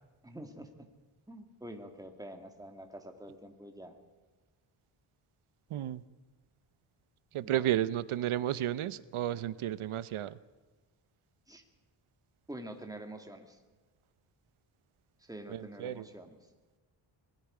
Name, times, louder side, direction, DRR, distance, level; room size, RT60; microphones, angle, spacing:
voice 1, 0.2-0.9 1.3-4.0 7.4-7.8 11.5-11.6 12.5-13.6 15.2-16.4, right 1 dB, 5° right, 4 dB, 1.9 m, -47 dB
voice 2, 5.7-6.0 7.3-10.4 15.5-16.1, right 12 dB, 85° right, 16 dB, 0.8 m, -32 dB
25.0 x 20.5 x 5.0 m, 1.2 s
wide cardioid pair, 145°, 49 cm